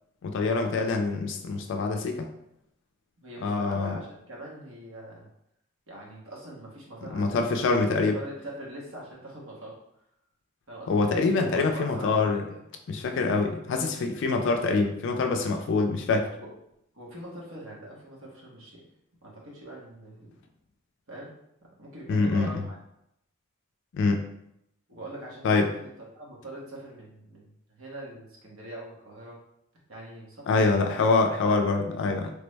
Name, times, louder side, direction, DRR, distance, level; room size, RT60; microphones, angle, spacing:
voice 1, 0.2-2.3 3.4-4.0 7.1-8.2 10.9-12.4 12.9-16.3 22.1-22.6 23.9-24.2 25.4-25.7 30.5-32.3, left 3 dB, 60° left, 4 dB, 0.3 m, -25 dB
voice 2, 3.2-5.3 5.9-9.8 10.7-11.0 11.3-12.6 16.4-16.5 16.9-18.8 19.2-20.3 21.1-21.3 21.8-22.8 24.9-25.9 26.1-29.4 29.9-31.1 31.4-31.6, right 1 dB, 75° right, -3 dB, 1.0 m, -43 dB
3.3 x 2.0 x 3.2 m, 0.79 s
head